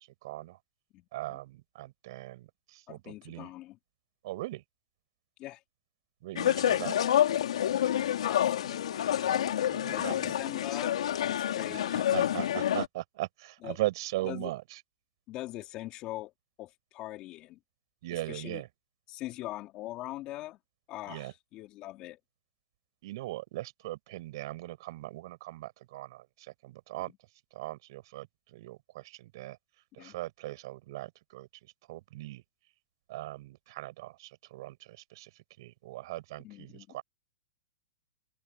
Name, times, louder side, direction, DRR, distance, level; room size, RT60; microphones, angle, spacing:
voice 1, 0.2-0.6 1.1-3.5 4.2-4.6 6.2-7.0 9.7-10.3 11.7-14.8 18.0-18.7 21.1-21.3 23.0-27.1 27.5-29.6 29.9-32.4 33.1-37.0, right 17 dB, 45° right, 7.2 m, -39 dB
voice 2, 0.9-1.4 2.9-3.8 5.4-5.6 8.2-9.1 9.8-11.0 11.2-12.0 13.6-13.8 14.2-14.5 15.3-16.3 16.6-17.6 18.3-18.6 19.1-20.6 20.9-22.2 30.0-30.1 36.4-37.0, left 16 dB, 25° left, 3.4 m, -42 dB
sound 1, 6.3-12.9, left 10 dB, 75° left, 2.9 m, -28 dB
open air
hypercardioid pair, 170°, 3 cm